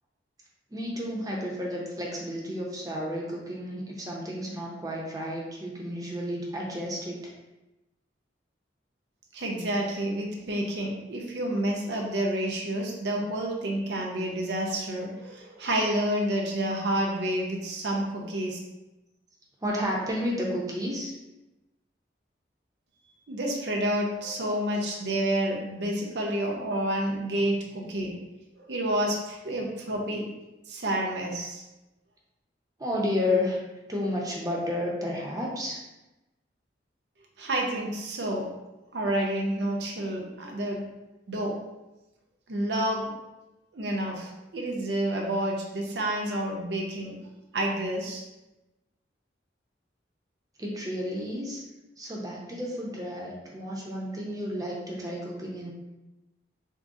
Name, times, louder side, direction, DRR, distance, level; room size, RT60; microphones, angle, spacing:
voice 1, 0.7-7.2 19.6-21.1 32.8-33.6 33.9-35.8 50.6-51.6 52.0-55.7, left 1 dB, 20° right, -3 dB, 0.6 m, -31 dB
voice 2, 9.3-18.6 23.3-28.1 28.7-30.3 30.7-31.6 37.4-38.5 38.9-40.8 41.3-41.6 42.5-43.1 43.7-47.1 47.5-48.2, right 1 dB, 65° right, 0 dB, 0.6 m, -29 dB
3.7 x 2.0 x 3.6 m, 1.0 s
head